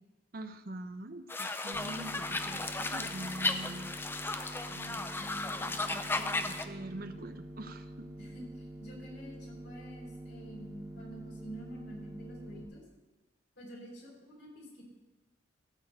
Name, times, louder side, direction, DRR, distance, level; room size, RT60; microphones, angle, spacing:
voice 1, 0.3-3.9 5.4-8.1, right 1 dB, 55° right, 9 dB, 0.8 m, -44 dB
sound 1, 1.3-6.6, left 3 dB, 10° left, 0.5 m, -35 dB
sound 2, 1.7-12.6, right 1 dB, 25° right, 1.6 m, -47 dB
voice 2, 4.7-6.1 8.2-12.8 13.6-14.8, right 1 dB, 75° left, -3 dB, 4.6 m, -48 dB
13.0 x 4.5 x 8.5 m, 1.2 s
head